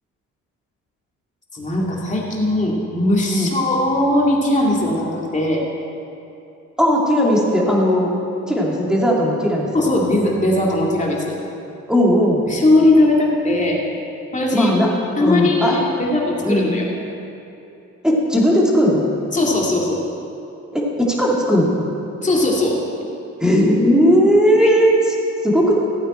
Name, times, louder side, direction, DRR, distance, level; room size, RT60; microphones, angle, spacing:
voice 1, 1.5-5.6 9.7-11.4 12.5-13.8 14.3-14.7 15.2-16.9 19.3-20.0 22.2-22.8 24.6-24.7, left 1 dB, 25° left, -3 dB, 2.5 m, -19 dB
voice 2, 6.8-8.1 8.5-9.9 11.9-12.4 14.5-14.9 15.2-15.8 16.4-16.9 18.0-19.1 20.7-21.7 23.4-25.1 25.4-25.7, equal, ahead, -3 dB, 2.5 m, -17 dB
15.5 x 8.8 x 4.5 m, 2.9 s
cardioid pair, 90°, 30 cm